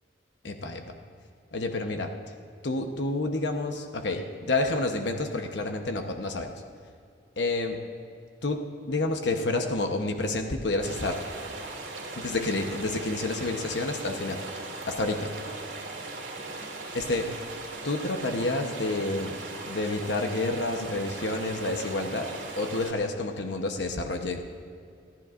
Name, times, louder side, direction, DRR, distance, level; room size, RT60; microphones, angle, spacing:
voice 1, 0.4-1.0 1.5-2.1 2.6-6.5 7.4-7.8 8.4-11.2 12.2-15.3 16.9-17.3 17.8-19.4 19.7-22.3 22.6-24.5, left 2 dB, 70° left, 4 dB, 0.9 m, -29 dB
sound 1, 10.8-22.9, right 2 dB, 85° right, 2.5 m, -39 dB
29.5 x 11.0 x 2.5 m, 2.3 s
head